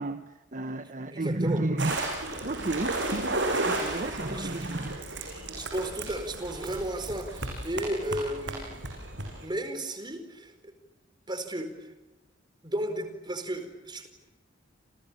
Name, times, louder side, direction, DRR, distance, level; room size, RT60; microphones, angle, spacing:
voice 1, 0.0-2.0 2.4-3.1 3.6-5.0, right 2 dB, 45° right, 9 dB, 1.1 m, -32 dB
voice 2, 1.1-1.6 3.9-4.7 5.5-8.8 9.4-10.7 11.3-11.9 12.6-14.1, right 1 dB, 25° right, 8 dB, 4.7 m, -34 dB
sound 1, 1.8-9.5, right 2 dB, 70° right, 7.4 m, -33 dB
30.0 x 28.5 x 7.1 m, 1.1 s
head